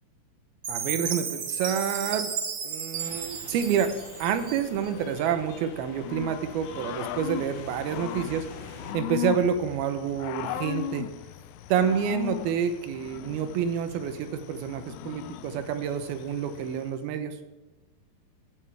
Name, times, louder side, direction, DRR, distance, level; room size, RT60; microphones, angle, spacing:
Chime, 0.6-4.9, right 7 dB, 55° right, 1.7 m, -33 dB
voice 1, 0.7-2.3 2.6-3.9 4.2-8.5 8.9-11.1 11.7-17.4, right 8 dB, 80° right, 9 dB, 2.9 m, -28 dB
sound 1, 3.0-9.0, left 5 dB, 65° left, 1.7 m, -45 dB
Growling / Cricket, 6.0-16.9, left 14 dB, 85° left, 2.4 m, -38 dB
16.5 x 8.7 x 3.5 m, 1.2 s
omnidirectional pair, 4.3 m